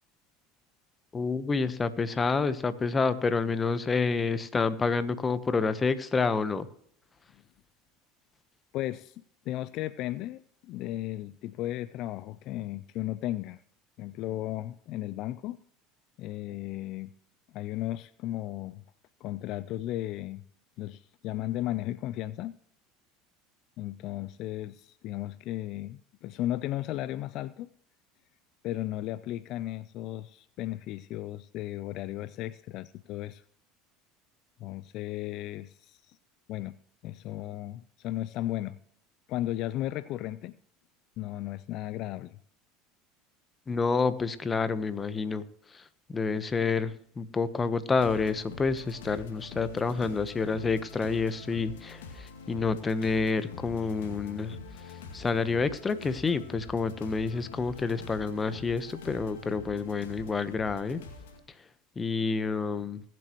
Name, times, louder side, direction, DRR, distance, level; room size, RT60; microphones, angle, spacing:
voice 1, 1.1-6.7 43.7-45.4 45.7-45.8 46.1-54.6 55.1-61.0 62.0-63.0, left 4 dB, 25° left, 13 dB, 1.0 m, -28 dB
voice 2, 8.7-13.6 14.0-15.6 16.2-17.1 17.5-18.8 19.2-20.4 20.8-22.6 23.8-27.7 28.6-33.4 34.6-36.2 36.5-36.8 37.0-38.8 39.3-40.6 41.2-42.4, left 14 dB, 60° left, 16 dB, 0.4 m, -35 dB
sound 1, 48.0-61.4, left 4 dB, 90° left, 2.2 m, -45 dB
20.5 x 7.7 x 3.1 m, 0.66 s
supercardioid pair, 95°, 0 cm